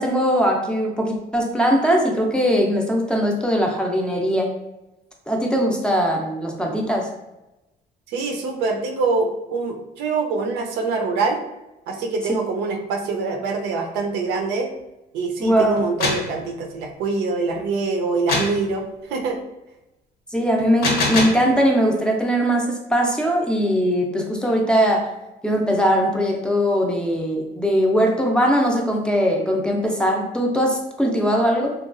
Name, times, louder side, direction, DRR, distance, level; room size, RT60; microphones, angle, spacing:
voice 1, 0.0-4.5 5.3-7.1 15.4-15.8 20.3-25.1 25.4-31.7, equal, 5° left, 0 dB, 0.4 m, -20 dB
voice 2, 8.1-11.4 11.9-14.7 15.1-19.4, right 4 dB, 90° right, 3 dB, 0.5 m, -24 dB
sound 1, 15.8-16.3 18.3-18.6 20.6-21.5, left 3 dB, 65° left, 0.7 m, -23 dB
2.9 x 2.3 x 2.4 m, 0.98 s
cardioid pair, 110°, 17 cm